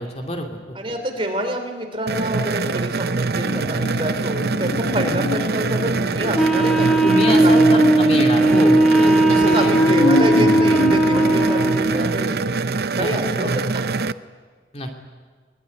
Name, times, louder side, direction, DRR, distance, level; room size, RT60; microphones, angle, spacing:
voice 1, 0.0-0.8 5.0-5.1 7.0-10.0 13.0-13.6 14.7-14.9, left 1 dB, 35° left, 3 dB, 2.5 m, -27 dB
voice 2, 0.7-7.8 8.4-12.4 13.0-14.0, right 1 dB, 30° right, 4 dB, 3.3 m, -27 dB
sound 1, 2.1-14.1, right 4 dB, 60° right, 0.6 m, -24 dB
sound 2, 3.3-12.4 12.8-12.9, left 2 dB, 60° left, 1.9 m, -27 dB
Wind instrument woodwind instrument, 6.3-12.2, right 2 dB, 5° left, 1.6 m, -17 dB
21.5 x 21.0 x 9.5 m, 1.5 s
head